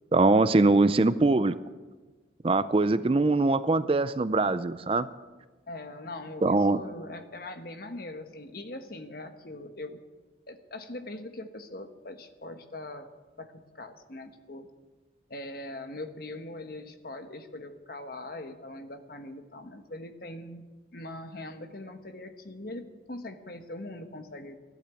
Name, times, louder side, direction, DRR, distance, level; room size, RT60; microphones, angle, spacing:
voice 1, 0.1-1.6 2.4-5.1 6.4-6.8, right 3 dB, 30° right, 14 dB, 0.4 m, -22 dB
voice 2, 5.7-10.0 10.5-13.1 13.4-14.7 15.3-20.7 20.9-24.5, left 2 dB, 50° left, 6 dB, 1.3 m, -41 dB
14.5 x 11.5 x 8.3 m, 1.3 s
head